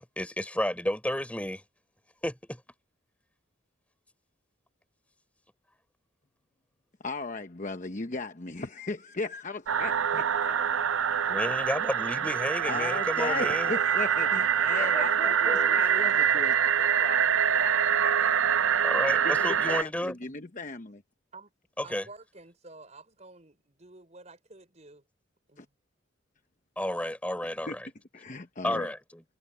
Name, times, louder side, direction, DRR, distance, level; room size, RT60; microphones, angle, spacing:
voice 1, 0.0-1.6 2.2-2.6 11.3-13.7 14.8-15.8 18.8-20.1 21.8-22.1 26.8-27.9 28.6-29.2, left 1 dB, 5° left, 3.7 m, -32 dB
voice 2, 7.0-10.9 12.7-18.4 19.2-21.0 25.6-25.7 27.7-27.8 28.1-28.9, left 3 dB, 40° left, 0.9 m, -37 dB
sound 1, 9.7-19.8, right 8 dB, 80° right, 0.6 m, -25 dB
voice 3, 21.8-25.0 25.5-25.6, right 2 dB, 35° right, 5.5 m, -50 dB
head